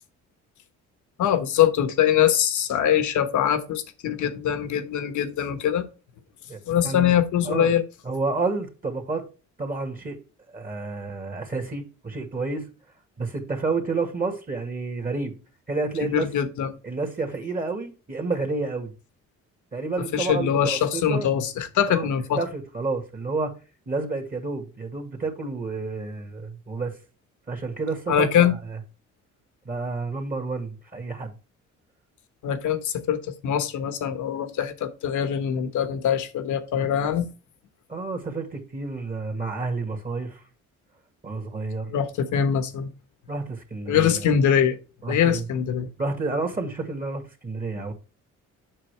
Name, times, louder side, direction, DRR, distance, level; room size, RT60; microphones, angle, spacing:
voice 1, 1.2-5.9 6.7-7.8 16.0-16.7 20.1-22.4 28.1-28.5 32.4-37.3 41.9-42.9 43.9-44.8 45.1-45.9, left 9 dB, 80° left, 1.2 m, -23 dB
voice 2, 6.5-7.1 7.4-7.7 8.0-9.2 9.6-10.2 10.5-12.7 13.2-15.3 15.7-16.3 16.8-18.9 19.7-21.3 21.9-22.1 22.4-23.5 23.8-27.0 27.5-28.8 29.6-31.3 37.9-40.4 41.2-41.9 43.3-44.3 45.0-45.4 46.0-47.9, right 3 dB, 30° right, 1.8 m, -30 dB
7.5 x 5.7 x 3.3 m
cardioid pair, 90°, 30 cm